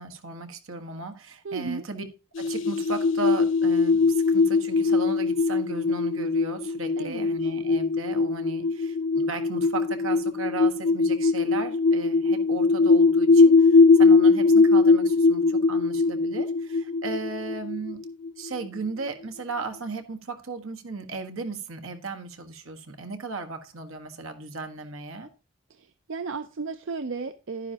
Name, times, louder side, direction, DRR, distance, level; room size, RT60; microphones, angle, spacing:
voice 1, 0.0-2.1 2.4-18.0 18.4-25.3, right 3 dB, 85° right, 1.5 m, -36 dB
voice 2, 1.4-1.8 7.0-7.3 25.7-27.7, right 4 dB, 70° right, 0.5 m, -34 dB
sound 1, 2.4-18.7, left 4 dB, 70° left, 0.6 m, -21 dB
11.5 x 9.7 x 2.9 m
head